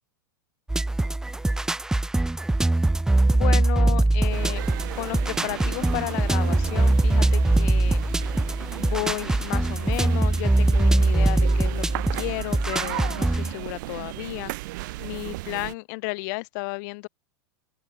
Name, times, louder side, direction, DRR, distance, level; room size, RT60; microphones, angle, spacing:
sound 1, 0.7-13.5, right 2 dB, 5° right, 0.6 m, -22 dB
voice 1, 3.3-4.7 5.0-8.0 8.8-14.5 15.0-17.1, left 29 dB, 55° left, 2.0 m, -33 dB
sound 2, 4.3-15.7, right 20 dB, 60° right, 1.6 m, -36 dB
open air
hypercardioid pair, 110°, 11 cm